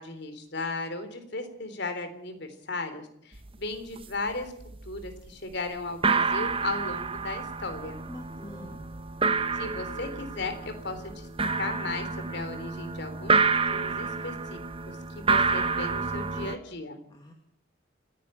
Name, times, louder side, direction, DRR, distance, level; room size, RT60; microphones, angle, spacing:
voice 1, 0.0-4.5 4.9-8.0 9.5-11.3 11.6-13.4 13.7-14.6 14.9-17.0, left 3 dB, 60° left, 8 dB, 3.6 m, -36 dB
sound 1, 3.3-3.5 3.7-4.3 4.6-5.2 5.5-5.6 5.9-16.6, right 4 dB, 30° right, 1.0 m, -29 dB
voice 2, 8.1-8.9 17.1-17.3, left 1 dB, 20° left, 2 dB, 2.1 m, -46 dB
sound 2, 8.2-9.3, left 1 dB, ahead, 2.8 m, -53 dB
29.0 x 10.5 x 9.1 m, 0.73 s
head